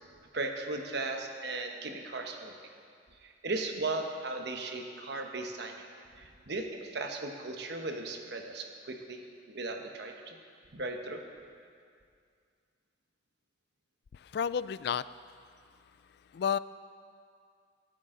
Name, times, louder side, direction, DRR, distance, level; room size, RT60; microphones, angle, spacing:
voice 1, 0.3-2.5 3.2-5.9 6.2-9.2 9.5-10.4 10.7-11.2, right 2 dB, 60° right, 3 dB, 1.2 m, -37 dB
voice 2, 14.1-15.1 16.1-16.6, left 7 dB, 60° left, 16 dB, 0.3 m, -32 dB
21.0 x 8.9 x 3.9 m, 2.3 s
head